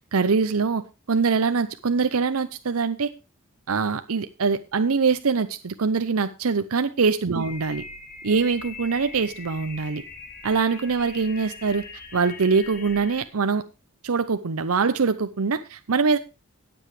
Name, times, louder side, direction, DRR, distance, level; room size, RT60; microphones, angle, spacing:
voice 1, 0.1-3.1 3.7-7.8 8.2-10.0 10.4-11.8 12.1-13.6 14.0-16.2, right 5 dB, 75° right, 10 dB, 0.7 m, -23 dB
sound 1, 7.4-13.2, left 4 dB, 40° left, 2.5 m, -41 dB
17.5 x 8.0 x 3.2 m, 0.27 s
head